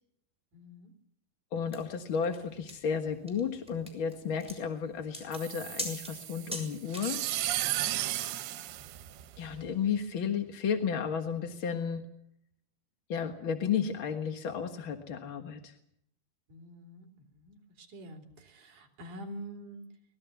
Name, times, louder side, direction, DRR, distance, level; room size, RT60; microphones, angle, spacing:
voice 1, 0.5-0.9 16.5-19.9, right 1 dB, 55° right, 3 dB, 4.7 m, -46 dB
voice 2, 1.5-7.2 9.4-12.0 13.1-15.7, left 7 dB, 55° left, 5 dB, 1.5 m, -33 dB
sound 1, 1.7-8.0, equal, ahead, 6.1 m, -43 dB
sound 2, 5.3-9.7, right 14 dB, 85° right, 3.1 m, -35 dB
24.5 x 20.5 x 7.1 m, 0.74 s
omnidirectional pair, 4.4 m